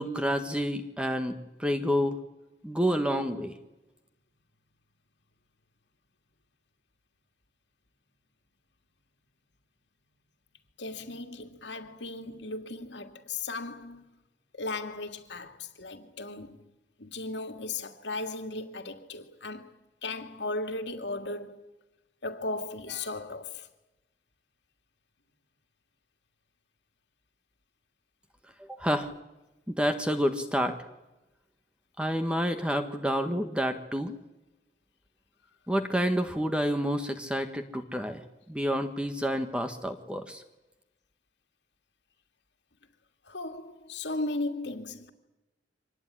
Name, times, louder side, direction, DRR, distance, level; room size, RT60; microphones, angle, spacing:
voice 1, 0.0-2.2 2.6-3.5 28.8-29.1 29.7-30.8 32.0-34.1 35.7-38.2 38.5-40.4, equal, 5° right, 1.6 m, -29 dB
voice 2, 10.8-14.0 14.5-16.7 17.0-19.7 20.0-21.6 22.2-23.7 43.2-45.1, left 2 dB, 70° left, 2.6 m, -36 dB
25.0 x 19.5 x 9.8 m
head